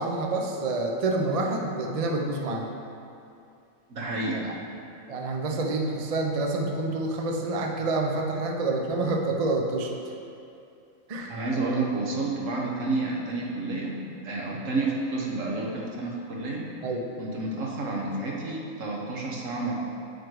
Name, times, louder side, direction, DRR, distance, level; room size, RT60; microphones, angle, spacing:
voice 1, 0.0-2.7 4.3-4.5 5.1-10.0 11.1-11.4 16.8-17.0, right 2 dB, 50° right, 1 dB, 0.4 m, -28 dB
voice 2, 3.9-4.4 11.3-16.7 17.2-19.7, right 2 dB, 65° right, -2 dB, 1.4 m, -30 dB
7.7 x 4.9 x 4.6 m, 2.6 s
omnidirectional pair, 1.5 m